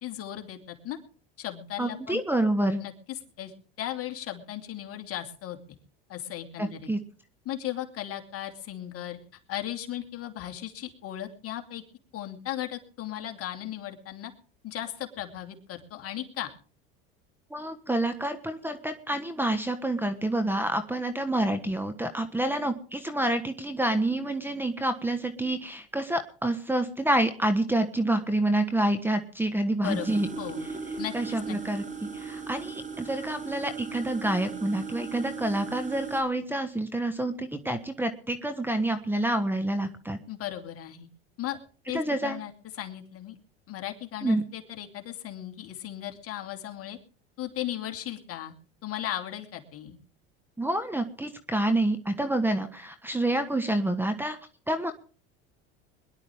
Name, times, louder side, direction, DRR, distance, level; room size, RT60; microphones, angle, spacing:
voice 1, 0.0-1.0 1.4-2.2 2.8-5.6 6.1-6.9 7.4-9.2 9.5-11.8 12.1-14.3 14.6-16.5 29.8-30.7 31.0-31.1 31.5-31.6 40.3-41.1 41.4-41.6 41.9-43.4 43.7-47.0 47.4-48.5 48.8-50.0, left 12 dB, 50° left, 5 dB, 2.7 m, -36 dB
voice 2, 1.8-2.8 6.6-7.0 17.5-30.3 31.1-31.8 32.1-40.2 41.9-42.4 44.2-44.4 50.6-54.4 54.7-54.9, right 1 dB, 5° right, 9 dB, 1.3 m, -28 dB
sound 1, 29.8-36.2, right 5 dB, 25° right, 3.4 m, -37 dB
22.0 x 11.5 x 3.6 m, 0.41 s
supercardioid pair, 95°, 30 cm